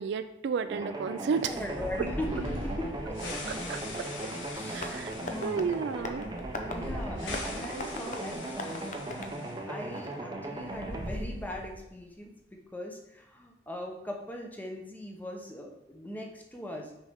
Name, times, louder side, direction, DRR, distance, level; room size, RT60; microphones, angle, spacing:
voice 1, 0.0-1.6 3.5-4.3 4.7-5.1 5.4-6.3, right 6 dB, 60° right, 11 dB, 0.3 m, -32 dB
sound 1, 0.7-11.1, right 2 dB, 20° right, 0.6 m, -38 dB
sound 2, 1.4-9.6 9.8-9.9 10.6-11.9, left 1 dB, 75° left, 1.5 m, -41 dB
voice 2, 1.5-3.4 3.6-4.0 4.5-5.7 6.6-12.3 12.7-16.9, left 1 dB, 10° left, 1 dB, 0.8 m, -40 dB
Tap, 4.7-10.2, left 3 dB, 40° left, 0.6 m, -42 dB
6.2 x 5.3 x 3.5 m, 0.84 s
head